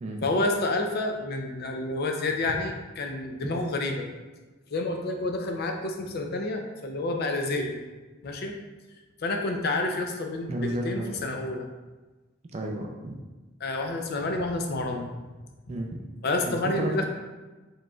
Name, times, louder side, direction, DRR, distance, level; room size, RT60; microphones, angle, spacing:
voice 1, 0.2-4.1 4.7-7.8 8.2-8.6 9.2-11.7 13.6-15.1 16.2-17.0, left 2 dB, 50° left, 3 dB, 0.4 m, -29 dB
voice 2, 10.5-11.4 12.5-13.2 15.7-16.0 16.4-17.0, right 1 dB, 30° right, 1 dB, 0.3 m, -32 dB
4.8 x 3.1 x 2.3 m, 1.2 s
head